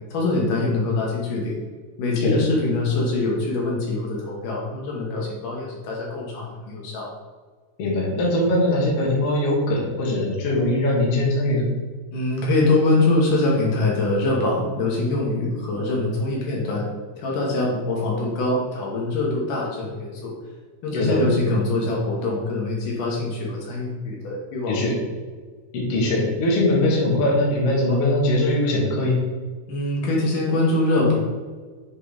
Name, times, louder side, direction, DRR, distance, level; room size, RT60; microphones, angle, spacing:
voice 1, 0.1-1.6 2.0-7.1 12.1-16.9 17.2-20.3 20.8-24.8 29.7-31.1, left 2 dB, 70° left, -3 dB, 2.8 m, -23 dB
voice 2, 7.8-11.7 20.9-21.3 24.7-24.9 25.7-29.2, left 1 dB, 50° left, -4 dB, 2.2 m, -21 dB
7.6 x 3.8 x 4.9 m, 1.4 s
omnidirectional pair, 3.9 m